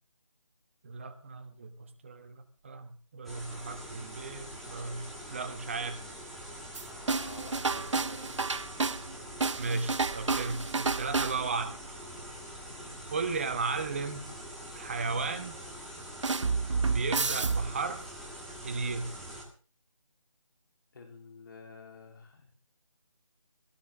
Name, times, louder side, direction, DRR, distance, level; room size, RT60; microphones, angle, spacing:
voice 1, 0.8-6.0 9.6-11.8 13.1-14.3 14.7-15.6 16.8-18.1 18.6-19.1, right 4 dB, 20° right, 8 dB, 1.3 m, -35 dB
sound 1, 3.2-19.4, equal, ahead, 1.8 m, -44 dB
sound 2, 6.7-9.1 9.4-11.6 16.2-18.1, right 4 dB, 60° right, 0.8 m, -30 dB
voice 2, 6.9-8.7 12.6-13.0 20.9-22.5, left 4 dB, 40° left, 3 dB, 3.8 m, -50 dB
19.5 x 17.5 x 3.7 m, 0.36 s
figure-of-eight pair, 170°, 17 cm